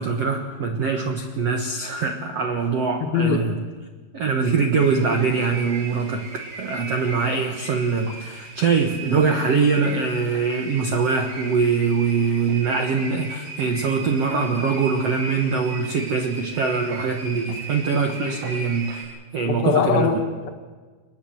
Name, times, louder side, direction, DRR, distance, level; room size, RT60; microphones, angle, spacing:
voice 1, 0.0-3.6 4.1-6.3 6.6-19.0 19.3-20.1, right 5 dB, 85° right, 4 dB, 1.3 m, -23 dB
voice 2, 3.0-3.5 19.5-20.5, left 6 dB, 60° left, 4 dB, 3.4 m, -22 dB
sound 1, 4.8-19.0, right 3 dB, 55° right, 7.8 m, -37 dB
27.0 x 20.0 x 7.7 m, 1.4 s
omnidirectional pair, 5.1 m